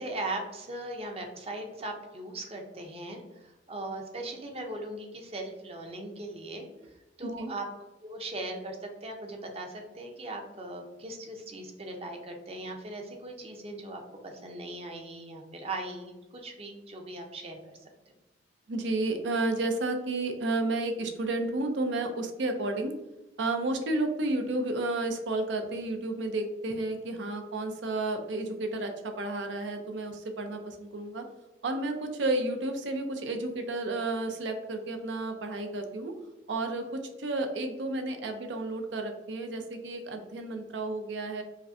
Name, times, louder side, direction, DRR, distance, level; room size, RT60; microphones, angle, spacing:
voice 1, 0.0-6.7 7.2-7.7 8.0-17.8, right 2 dB, 35° right, 2 dB, 0.6 m, -39 dB
voice 2, 18.7-22.9 23.4-31.2 31.6-36.1 36.5-41.4, right 2 dB, 80° right, 5 dB, 0.6 m, -31 dB
4.9 x 2.1 x 2.7 m, 1.0 s
head